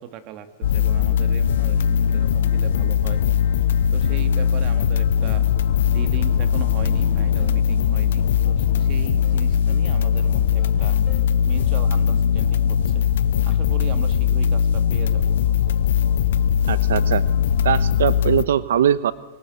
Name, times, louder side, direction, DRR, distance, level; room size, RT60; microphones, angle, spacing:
voice 1, 0.0-3.2 3.9-5.5 5.9-11.0 11.5-13.1 13.4-15.4, right 10 dB, 40° right, 10 dB, 2.3 m, -38 dB
sound 1, 0.6-18.4, left 8 dB, 80° left, 1.0 m, -20 dB
sound 2, 0.9-11.8, left 10 dB, 45° left, 2.9 m, -45 dB
sound 3, 6.9-13.6, left 1 dB, 10° right, 3.0 m, -45 dB
voice 2, 16.7-17.2 17.6-19.1, right 9 dB, 85° right, 17 dB, 0.8 m, -21 dB
26.5 x 23.5 x 8.0 m, 1.2 s
supercardioid pair, 150°, 0 cm